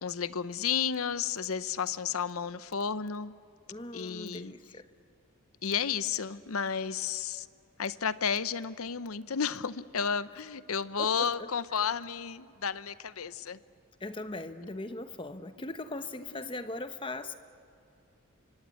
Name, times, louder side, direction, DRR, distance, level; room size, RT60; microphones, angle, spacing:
voice 1, 0.0-3.3 3.9-4.5 5.6-7.5 7.8-13.6 16.3-16.4, left 7 dB, 80° left, 0.8 m, -32 dB
voice 2, 3.7-4.9 11.0-11.9 14.0-17.3, left 2 dB, 25° left, 1.0 m, -40 dB
26.0 x 24.5 x 8.5 m
head